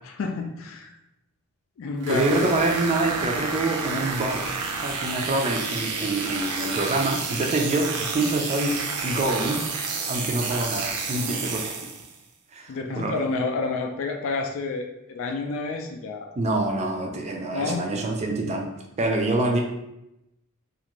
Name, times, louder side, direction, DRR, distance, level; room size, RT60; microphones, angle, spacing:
voice 1, 0.0-0.9 1.8-2.5 12.7-16.3 17.5-17.9, left 3 dB, 60° left, 3 dB, 0.3 m, -29 dB
sound 1, 2.0-12.2, right 4 dB, 90° right, 0.5 m, -30 dB
voice 2, 2.1-4.5 4.8-8.8 9.0-9.7 10.1-11.8 12.5-13.1 16.4-18.7 19.0-19.6, right 2 dB, 30° right, 2 dB, 0.4 m, -26 dB
2.5 x 2.5 x 2.9 m, 0.89 s
head